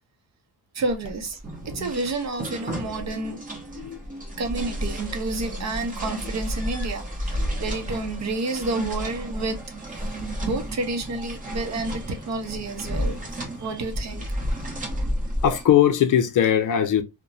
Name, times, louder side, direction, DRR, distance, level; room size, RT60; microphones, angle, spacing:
voice 1, 0.7-1.4 1.7-3.4 4.4-9.6 9.9-10.1 10.4-13.3 13.6-14.3, right 2 dB, 45° right, 0.7 m, -30 dB
sound 1, 0.9-15.6, equal, 20° right, 0.8 m, -32 dB
voice 2, 15.4-17.0, left 10 dB, 55° left, 0.5 m, -20 dB
2.9 x 2.1 x 2.5 m
cardioid pair, 140°, 39 cm